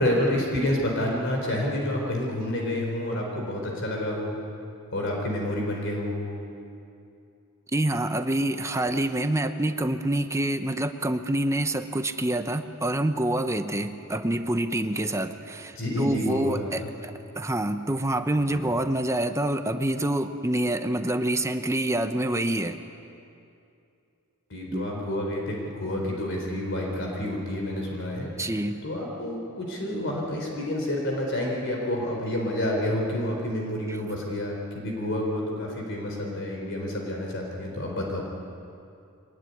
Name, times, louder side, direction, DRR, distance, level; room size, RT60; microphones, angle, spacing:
voice 1, 0.0-4.4 4.9-6.4 15.7-16.9 18.4-18.6 24.5-38.2, left 1 dB, 55° left, 0 dB, 4.1 m, -29 dB
voice 2, 7.7-15.7 16.0-22.8 24.7-24.9 26.0-26.1 28.4-28.8, right 1 dB, 15° right, 8 dB, 0.9 m, -27 dB
23.5 x 19.0 x 9.8 m, 2.6 s
head